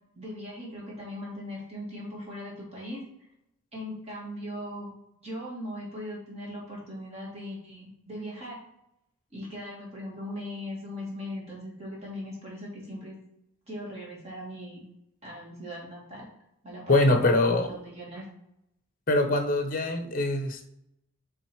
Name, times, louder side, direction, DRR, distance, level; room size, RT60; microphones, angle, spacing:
voice 1, 0.2-3.0 3.7-8.6 9.3-13.2 13.7-14.8 15.2-16.2 16.6-18.2, equal, 30° right, -4 dB, 2.6 m, -39 dB
voice 2, 16.9-17.7 19.1-20.7, left 2 dB, 40° left, 6 dB, 0.9 m, -23 dB
7.5 x 3.9 x 4.7 m, 0.83 s
head